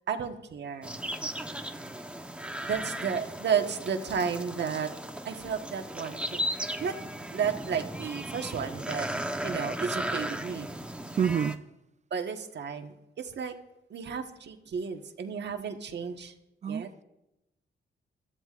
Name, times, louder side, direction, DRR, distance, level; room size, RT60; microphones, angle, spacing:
voice 1, 0.1-1.0 2.6-4.9 5.2-6.4 6.8-7.0 7.3-9.1 9.4-10.7 12.1-13.6 13.9-16.3 16.7-16.9, right 6 dB, 60° right, 1.4 m, -32 dB
sound 1, 0.8-11.6, right 1 dB, 5° right, 1.0 m, -36 dB
voice 2, 11.2-11.6 16.6-17.0, right 7 dB, 35° right, 0.4 m, -28 dB
24.0 x 14.0 x 2.5 m
cardioid pair, 100°, 20 cm